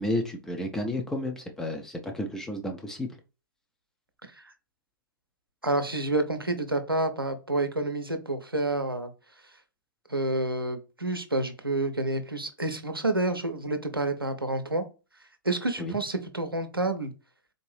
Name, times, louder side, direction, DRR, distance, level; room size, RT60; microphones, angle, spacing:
voice 1, 0.0-3.1 15.8-16.0, left 1 dB, 5° left, 0.4 m, -32 dB
voice 2, 5.6-9.1 10.1-14.9 15.4-17.1, right 2 dB, 90° right, 0.6 m, -29 dB
3.9 x 2.6 x 3.1 m
figure-of-eight pair, 115°, 12 cm